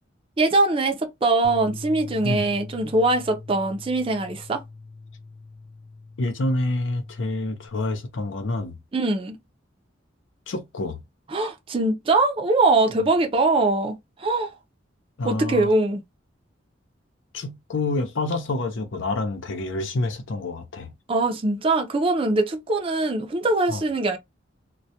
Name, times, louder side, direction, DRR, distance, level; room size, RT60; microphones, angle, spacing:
voice 1, 0.4-4.6 8.9-9.4 11.3-14.5 15.2-16.0 21.1-24.2, right 2 dB, 30° right, 0.4 m, -22 dB
sound 1, 1.4-7.7, left 3 dB, 30° left, 0.3 m, -42 dB
voice 2, 6.2-8.8 10.5-11.0 15.2-15.7 17.3-20.9 23.7-23.8, left 2 dB, 80° left, 0.6 m, -27 dB
2.2 x 2.1 x 2.7 m
head